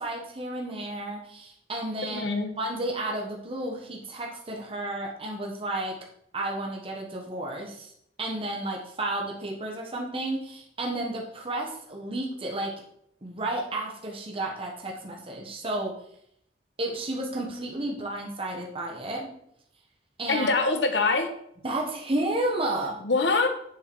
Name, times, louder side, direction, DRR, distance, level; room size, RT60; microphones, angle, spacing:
voice 1, 0.0-2.3 2.6-6.0 6.3-7.9 8.2-12.8 13.2-15.9 16.8-19.3 20.2-20.5 21.6-23.0, right 1 dB, 30° right, -1 dB, 1.3 m, -32 dB
voice 2, 2.1-2.5 20.3-21.3 23.0-23.5, left 3 dB, 85° left, 6 dB, 1.1 m, -24 dB
7.2 x 7.0 x 4.7 m, 0.71 s
head